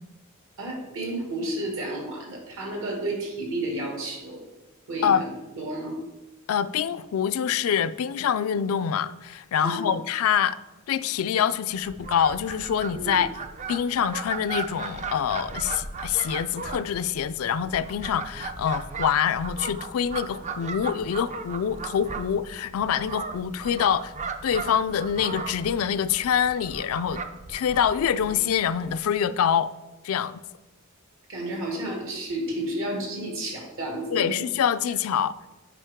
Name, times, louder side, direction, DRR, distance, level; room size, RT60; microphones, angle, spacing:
voice 1, 0.6-4.4 4.9-6.0 9.6-9.9 12.9-13.2 31.3-34.4, right 1 dB, 65° right, 2.0 m, -31 dB
voice 2, 6.5-10.6 10.9-13.3 13.7-24.1 24.4-27.2 27.5-29.7 30.0-30.4 34.1-35.5, left 8 dB, 70° left, 0.3 m, -25 dB
Fowl, 11.8-29.1, right 4 dB, 35° right, 0.5 m, -37 dB
8.4 x 5.3 x 3.6 m
head